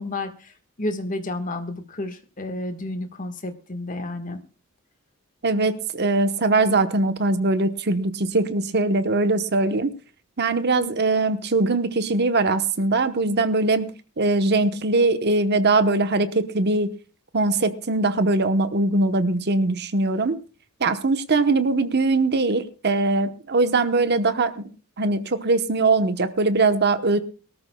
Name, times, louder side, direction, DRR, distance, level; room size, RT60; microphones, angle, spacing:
voice 1, 0.0-4.4, left 2 dB, 35° left, 8 dB, 1.5 m, -31 dB
voice 2, 5.4-9.9 10.4-13.9 14.2-16.9 17.3-20.4 20.8-24.6 25.0-27.2, right 3 dB, 50° right, 10 dB, 1.0 m, -21 dB
23.0 x 13.5 x 2.3 m, 0.35 s
head